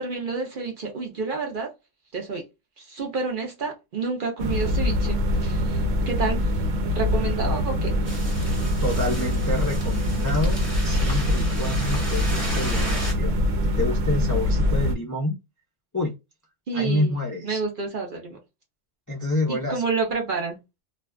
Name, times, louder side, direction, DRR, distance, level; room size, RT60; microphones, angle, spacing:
voice 1, 0.0-1.7 2.1-2.5 2.8-6.5 6.9-8.0 16.7-17.1 17.4-18.4 19.5-20.6, right 4 dB, 50° right, 0.7 m, -29 dB
sound 1, 4.4-15.0, left 1 dB, 90° right, 0.9 m, -24 dB
sound 2, 8.1-13.1, right 1 dB, 15° right, 0.8 m, -35 dB
voice 2, 8.8-13.3 13.8-15.4 15.9-16.1 16.7-17.6 19.1-19.8, left 1 dB, 25° left, 0.4 m, -28 dB
2.5 x 2.2 x 2.2 m
omnidirectional pair, 1.3 m